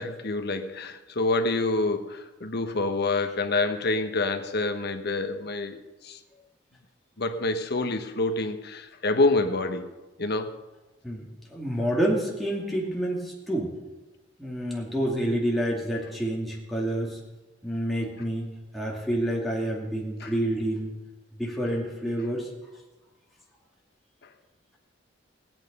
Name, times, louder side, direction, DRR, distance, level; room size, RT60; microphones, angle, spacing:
voice 1, 0.0-6.2 7.2-9.9 10.2-10.6 20.2-20.3, left 2 dB, 60° left, 7 dB, 1.1 m, -27 dB
voice 2, 11.0-13.7 14.4-17.2 17.6-18.5 18.7-20.9 21.4-22.5, right 1 dB, ahead, -4 dB, 2.3 m, -28 dB
17.5 x 9.0 x 5.4 m, 1.1 s
head